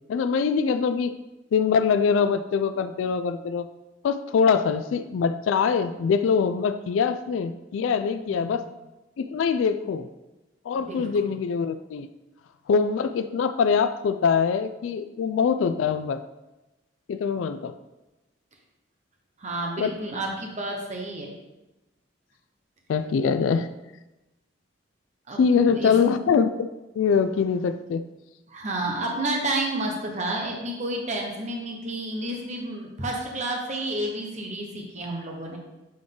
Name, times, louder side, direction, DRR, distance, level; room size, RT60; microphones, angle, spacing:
voice 1, 0.1-1.1 1.5-3.7 4.0-8.6 9.2-10.1 10.7-12.1 12.7-16.2 17.1-17.7 19.8-19.9 22.9-23.7 25.4-26.7 27.0-28.0, left 6 dB, 85° left, 11 dB, 0.3 m, -23 dB
voice 2, 8.3-8.6 10.8-11.3 19.4-21.3 25.3-25.9 28.5-35.6, right 1 dB, 40° right, 0 dB, 0.9 m, -31 dB
7.7 x 3.7 x 3.7 m, 1.0 s
head